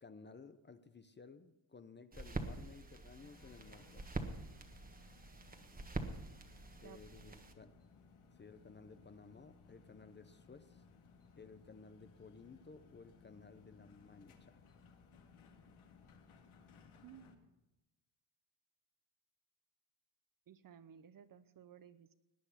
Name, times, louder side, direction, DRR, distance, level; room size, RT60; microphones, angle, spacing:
voice 1, 0.0-4.0 6.8-7.7 8.4-10.8 11.4-14.6, left 4 dB, 20° left, 11 dB, 0.7 m, -56 dB
sound 1, 2.1-7.5, right 3 dB, 15° right, 1.4 m, -45 dB
sound 2, 3.2-17.4, left 5 dB, 75° left, 2.0 m, -63 dB
voice 2, 6.8-7.4 17.0-17.5 20.5-22.1, right 8 dB, 45° right, 13 dB, 0.8 m, -58 dB
18.5 x 9.7 x 5.7 m, 0.97 s
cardioid pair, 120°, 50 cm